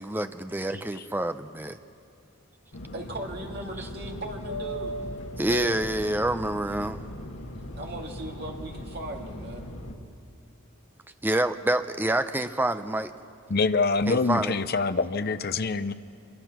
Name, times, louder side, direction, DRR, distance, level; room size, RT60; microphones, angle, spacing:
voice 1, 0.0-1.8 5.4-7.0 11.2-13.1 14.1-14.5, right 1 dB, 10° right, 10 dB, 0.5 m, -27 dB
Fixed-wing aircraft airplane, 2.7-9.9, left 1 dB, 85° left, 1.9 m, -38 dB
voice 2, 2.9-5.0 7.5-9.6, right 1 dB, 45° right, 1 dB, 2.2 m, -38 dB
voice 3, 13.5-15.9, left 4 dB, 45° left, 12 dB, 0.6 m, -25 dB
25.0 x 22.5 x 6.0 m, 2.8 s
head